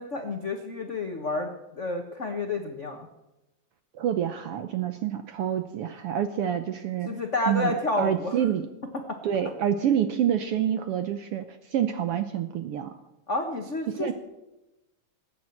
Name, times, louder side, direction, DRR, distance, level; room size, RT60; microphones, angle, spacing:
voice 1, 0.0-1.5 1.8-3.1 7.1-8.3 9.1-9.2 13.3-14.1, left 2 dB, 75° left, 4 dB, 0.6 m, -30 dB
voice 2, 4.0-7.1 7.5-8.7 9.2-12.9 13.9-14.1, right 9 dB, 75° right, 9 dB, 1.4 m, -27 dB
20.0 x 8.9 x 7.7 m, 0.97 s
omnidirectional pair, 3.4 m